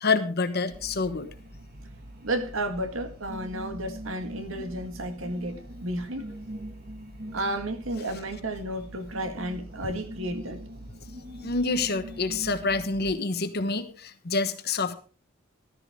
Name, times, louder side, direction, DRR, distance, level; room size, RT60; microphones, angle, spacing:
voice 1, 0.0-1.3 11.4-15.0, left 3 dB, 55° left, 1.1 m, -27 dB
sound 1, 0.7-13.1, right 1 dB, 50° right, 1.7 m, -42 dB
voice 2, 2.2-6.3 7.3-10.7, right 1 dB, 90° right, 1.9 m, -32 dB
13.5 x 13.0 x 3.6 m
head